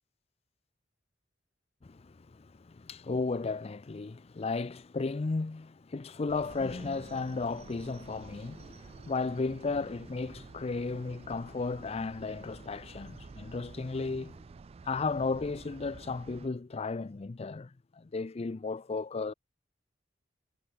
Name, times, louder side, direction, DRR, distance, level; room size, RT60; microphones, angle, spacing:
voice 1, 1.8-14.4 14.8-19.3, left 3 dB, 35° left, 0.5 m, -34 dB
sound 1, 6.3-16.5, right 4 dB, 35° right, 0.3 m, -50 dB
head